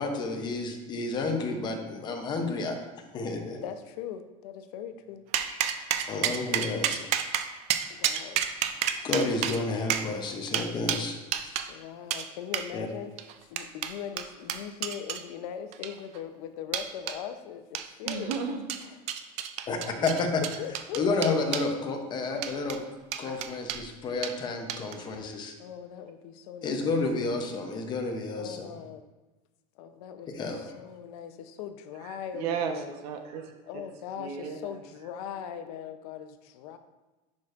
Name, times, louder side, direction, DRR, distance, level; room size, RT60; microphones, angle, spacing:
voice 1, 0.0-2.9 3.1-3.6 6.1-7.0 9.0-11.5 12.7-12.9 19.7-20.4 21.0-22.8 23.2-25.5 26.6-28.8 30.2-30.9, left 3 dB, 25° left, 4 dB, 0.7 m, -30 dB
voice 2, 3.5-5.2 6.4-7.1 7.9-8.4 11.7-13.1 13.4-18.4 20.0-20.1 20.6-21.4 25.6-26.9 28.4-29.0 29.8-32.9 33.7-36.8, left 8 dB, 90° left, 9 dB, 0.7 m, -40 dB
sound 1, 5.3-11.7 12.1-12.3 12.5-12.7 13.2-15.2 15.7-16.2 16.7-17.2 17.7-18.4 18.7-21.7 22.4-22.8 23.1-23.8 24.2-24.4 24.7-25.0, right 10 dB, 35° right, 0.4 m, -31 dB
voice 3, 18.0-18.7 32.0-33.8 34.2-34.8, right 6 dB, 90° right, 5 dB, 1.0 m, -34 dB
10.5 x 4.9 x 2.5 m, 1.1 s
cardioid pair, 175°, 19 cm